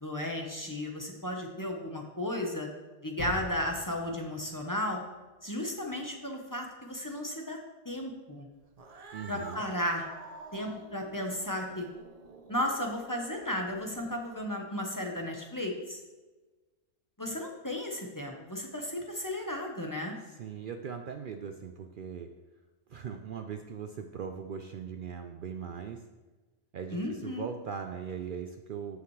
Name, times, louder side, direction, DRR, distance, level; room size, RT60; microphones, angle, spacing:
voice 1, 0.0-2.7 3.0-5.0 5.4-7.6 7.8-8.5 9.3-10.1 10.5-11.9 12.5-16.0 17.2-20.1 26.9-27.5, left 1 dB, 15° left, 1 dB, 0.8 m, -34 dB
sound 1, 3.2-5.9, left 3 dB, 90° left, 2.1 m, -45 dB
Cat, 8.7-14.3, right 3 dB, 40° right, 0.5 m, -49 dB
voice 2, 9.1-9.6 20.3-22.3 22.9-26.0 26.7-29.0, right 7 dB, 90° right, 6 dB, 0.4 m, -40 dB
14.0 x 5.8 x 3.2 m, 1.2 s
omnidirectional pair, 1.5 m